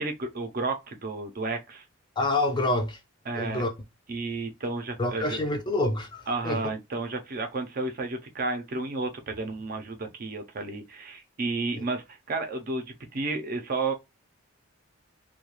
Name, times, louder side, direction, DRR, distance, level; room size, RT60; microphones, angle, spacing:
voice 1, 0.0-1.8 3.3-3.6 4.1-5.4 6.3-12.8 13.1-13.9, right 3 dB, 45° right, 0.5 m, -32 dB
voice 2, 2.2-3.0 3.3-3.7 5.0-6.6 11.7-11.8, left 2 dB, 20° left, 0.5 m, -27 dB
2.3 x 2.2 x 2.9 m
head